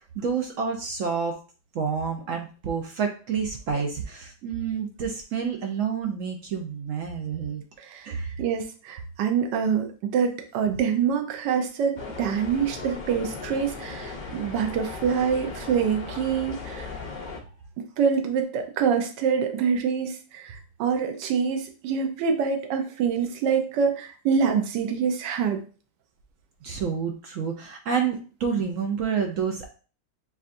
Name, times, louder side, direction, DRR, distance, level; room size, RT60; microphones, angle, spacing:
voice 1, 0.2-1.4 1.7-7.6 8.0-8.3 26.6-29.7, right 6 dB, 65° right, 3 dB, 0.8 m, -29 dB
voice 2, 7.8-16.9 18.0-25.6, right 6 dB, 85° right, 5 dB, 1.3 m, -26 dB
sound 1, 12.0-17.4, left 4 dB, 65° left, 0.4 m, -37 dB
7.0 x 2.3 x 2.5 m, 0.38 s
omnidirectional pair, 1.9 m